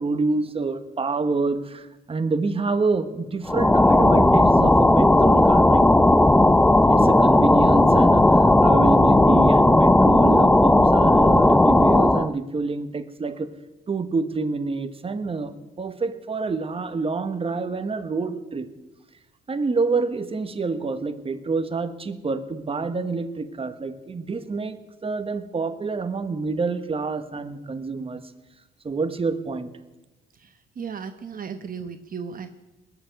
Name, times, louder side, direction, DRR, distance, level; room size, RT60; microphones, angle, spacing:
voice 1, 0.0-5.9 6.9-13.5 13.9-18.7 19.5-28.3 28.8-29.7, right 4 dB, 30° right, 9 dB, 1.2 m, -27 dB
sound 1, 3.5-12.3, left 1 dB, 5° left, 0.5 m, -16 dB
voice 2, 30.3-32.5, right 6 dB, 45° right, 8 dB, 1.0 m, -36 dB
20.0 x 7.0 x 9.2 m, 1.1 s
cardioid pair, 90°, 20 cm